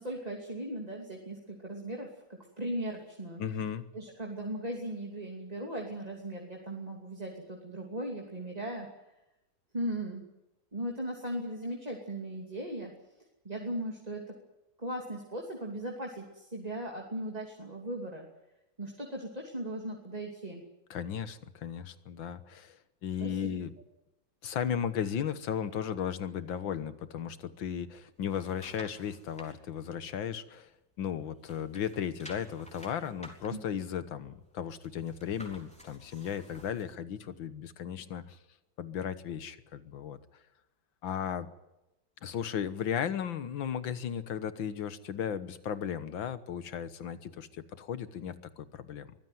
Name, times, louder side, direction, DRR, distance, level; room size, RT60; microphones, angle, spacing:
voice 1, 0.0-2.1 2.6-3.4 3.9-8.9 9.7-10.2 10.7-12.9 13.4-14.4 14.8-18.3 18.8-20.6 23.2-23.6 33.5-33.6, right 1 dB, 20° right, 0 dB, 2.9 m, -38 dB
voice 2, 3.4-3.9 20.9-23.7 24.4-30.7 31.0-38.4 38.8-40.2 41.0-41.5 42.2-49.2, left 8 dB, 85° left, 13 dB, 2.0 m, -35 dB
sound 1, 28.0-29.5 30.0-31.1 31.4-36.9 37.4-37.5, equal, 5° left, 3.8 m, -53 dB
23.5 x 15.5 x 9.4 m, 0.97 s
omnidirectional pair, 2.1 m